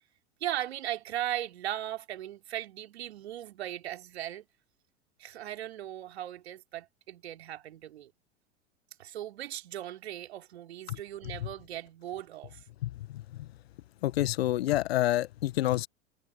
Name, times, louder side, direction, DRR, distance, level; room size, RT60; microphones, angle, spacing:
voice 1, 0.4-4.5 5.2-8.1 9.0-12.6, right 12 dB, 60° right, 3.5 m, -38 dB
voice 2, 12.8-13.2 14.0-15.9, left 14 dB, 55° left, 1.3 m, -28 dB
figure-of-eight pair, 85°, 36 cm